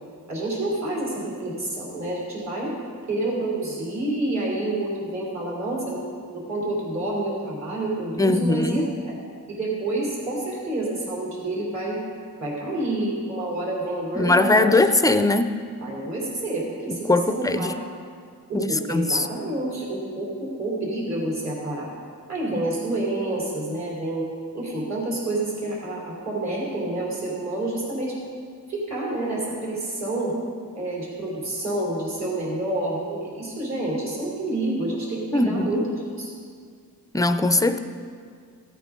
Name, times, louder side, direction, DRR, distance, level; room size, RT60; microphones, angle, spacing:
voice 1, 0.3-2.7 3.1-6.0 6.3-9.1 9.5-12.0 12.4-14.8 15.8-17.7 18.5-21.9 22.3-24.3 24.5-28.2 28.7-30.4 30.7-36.3, right 2 dB, 50° right, -5 dB, 3.3 m, -28 dB
voice 2, 8.2-8.9 14.2-15.6 16.9-17.7 18.5-19.3 22.5-22.7 35.3-35.8 37.1-37.8, left 2 dB, 10° left, 9 dB, 0.4 m, -21 dB
16.0 x 8.9 x 3.7 m, 2.1 s
wide cardioid pair, 140°, 36 cm